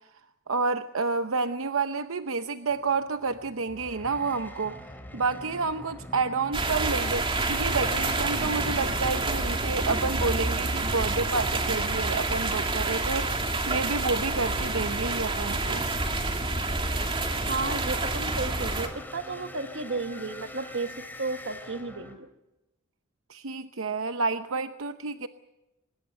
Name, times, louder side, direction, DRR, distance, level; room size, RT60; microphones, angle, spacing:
voice 1, 0.5-4.8 5.1-15.8 23.3-25.3, right 4 dB, 80° right, 9 dB, 0.8 m, -29 dB
sound 1, 2.7-22.1, equal, 10° left, 3.0 m, -45 dB
sound 2, 6.5-18.9, right 2 dB, 25° right, 2.6 m, -28 dB
voice 2, 17.5-22.3, right 3 dB, 60° right, 8 dB, 1.5 m, -33 dB
24.0 x 20.5 x 6.5 m, 0.97 s
head